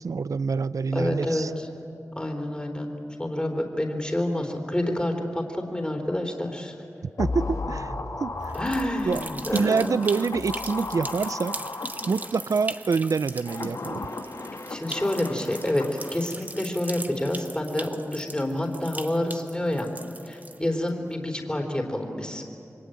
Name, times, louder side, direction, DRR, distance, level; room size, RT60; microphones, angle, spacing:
voice 1, 0.0-1.5 7.2-8.5 9.0-14.0, right 5 dB, 75° right, 16 dB, 0.6 m, -27 dB
voice 2, 0.9-1.7 2.1-2.9 3.2-6.7 8.5-10.0 14.7-15.9 16.1-19.9 20.3-22.4, left 1 dB, 15° left, 2 dB, 3.5 m, -28 dB
sound 1, 7.2-12.6 13.3-16.5 16.8-16.9, left 3 dB, 70° left, 2.1 m, -35 dB
sound 2, 8.4-20.9, right 2 dB, 30° right, 1.0 m, -40 dB
28.0 x 23.0 x 9.1 m, 2.8 s
wide cardioid pair, 55°, 6 cm